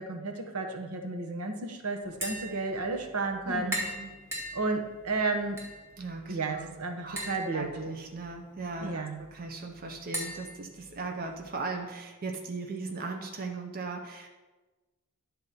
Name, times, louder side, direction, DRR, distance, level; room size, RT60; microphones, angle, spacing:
voice 1, 0.0-3.8 4.5-5.6 6.3-7.7 8.8-9.2, right 3 dB, 80° right, 4 dB, 0.9 m, -32 dB
Tap, 2.0-11.5, equal, 10° right, 1.8 m, -42 dB
voice 2, 3.4-4.1 6.0-7.2 7.5-14.3, right 3 dB, 40° right, 3 dB, 0.7 m, -38 dB
10.0 x 3.9 x 5.7 m, 1.2 s
head